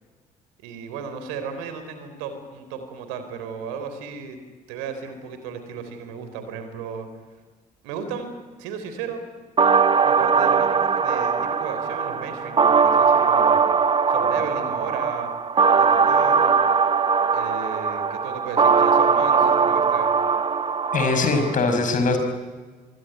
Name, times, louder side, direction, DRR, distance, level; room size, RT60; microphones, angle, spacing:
voice 1, 0.6-4.4 4.7-7.1 7.8-8.3 8.6-9.2 10.0-13.7 14.1-15.3 15.7-16.7 17.3-20.1, right 6 dB, 65° right, 9 dB, 3.8 m, -34 dB
sound 1, 9.6-21.6, right 5 dB, 30° right, 1.0 m, -20 dB
voice 2, 20.9-22.2, left 3 dB, 45° left, 6 dB, 5.6 m, -21 dB
24.5 x 23.0 x 9.9 m, 1.4 s
figure-of-eight pair, 50°, 19 cm